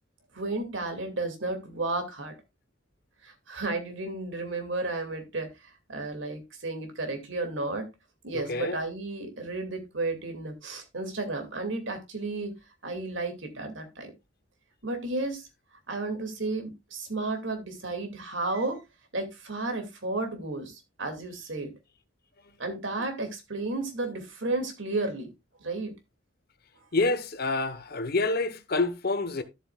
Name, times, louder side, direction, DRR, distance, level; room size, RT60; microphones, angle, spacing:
voice 1, 0.3-2.4 3.2-7.9 8.2-12.5 12.8-14.1 14.8-15.5 15.9-18.8 19.1-21.7 22.6-25.3 25.6-25.9, right 2 dB, 70° right, 2.4 m, -33 dB
voice 2, 8.3-8.8 22.4-22.6 26.9-29.4, left 3 dB, 55° left, 1.0 m, -28 dB
12.5 x 7.8 x 2.4 m
head